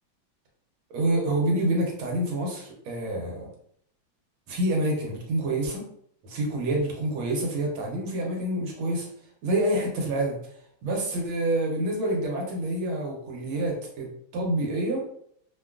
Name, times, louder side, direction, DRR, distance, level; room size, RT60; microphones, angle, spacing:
voice 1, 0.9-3.5 4.5-5.8 6.2-9.1 9.4-10.4 10.8-15.0, right 1 dB, 80° right, 0 dB, 1.5 m, -27 dB
3.4 x 2.3 x 2.3 m, 0.66 s
omnidirectional pair, 2.3 m